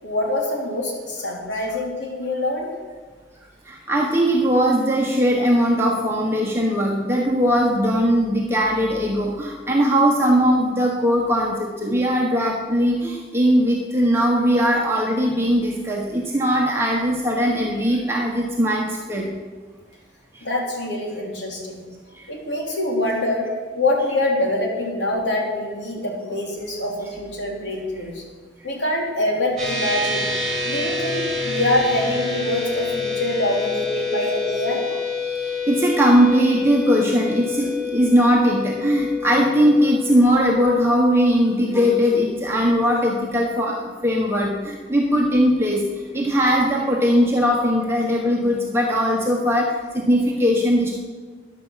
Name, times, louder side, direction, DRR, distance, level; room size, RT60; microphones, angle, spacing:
voice 1, 0.0-2.7 20.4-21.8 22.3-28.2 28.6-30.3 30.6-34.9, left 1 dB, 80° left, -1 dB, 3.3 m, -25 dB
voice 2, 3.7-19.3 20.3-20.4 22.2-22.3 35.2-43.8 44.0-45.8 46.1-51.0, equal, 15° right, -2 dB, 1.3 m, -19 dB
sound 1, 29.6-43.2, left 4 dB, ahead, 4.8 m, -28 dB
14.0 x 10.0 x 5.8 m, 1.5 s
head